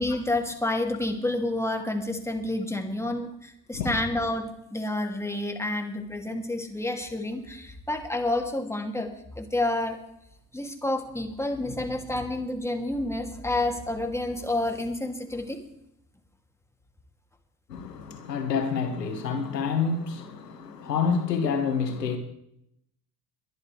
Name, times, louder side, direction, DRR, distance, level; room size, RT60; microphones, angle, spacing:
voice 1, 0.0-10.0 10.5-15.6, left 2 dB, 5° left, 2.6 m, -29 dB
voice 2, 17.7-22.2, left 5 dB, 85° left, 2.0 m, -28 dB
22.5 x 12.0 x 3.3 m
figure-of-eight pair, 60°, 48 cm